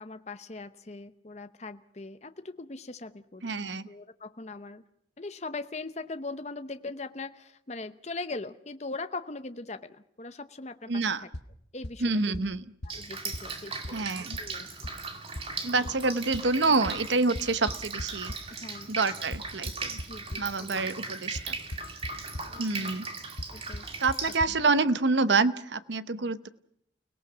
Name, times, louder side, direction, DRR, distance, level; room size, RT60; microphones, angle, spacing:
voice 1, 0.0-3.5 3.9-4.8 5.2-11.3 11.7-12.4 12.9-14.9 15.8-15.9 18.5-18.9 20.1-20.9 22.5-23.0 23.5-23.9 24.3-24.4, left 3 dB, 35° left, 10 dB, 0.8 m, -41 dB
voice 2, 3.4-3.9 10.9-11.2 12.0-12.6 13.9-14.4 15.6-18.3 18.9-20.0 20.4-21.6 22.6-23.1 24.0-26.5, right 3 dB, 70° right, 14 dB, 0.9 m, -27 dB
sound 1, 11.3-11.4 11.8-11.9 12.3-12.4 12.8-12.9 13.3-13.4 13.8-13.9 14.3-14.4 14.8-14.9 15.4-15.5 15.9-16.0 16.3-16.4 16.9-17.0 17.4-18.4 19.3-20.4 21.4-21.5 21.7-22.1 22.3-22.4 23.4-23.5 23.7-23.8 24.1-24.2 24.4-24.5, left 1 dB, 65° left, 1.3 m, -35 dB
Drip, 12.9-24.4, right 4 dB, 30° right, 2.0 m, -38 dB
30.0 x 18.0 x 6.1 m, 0.73 s
head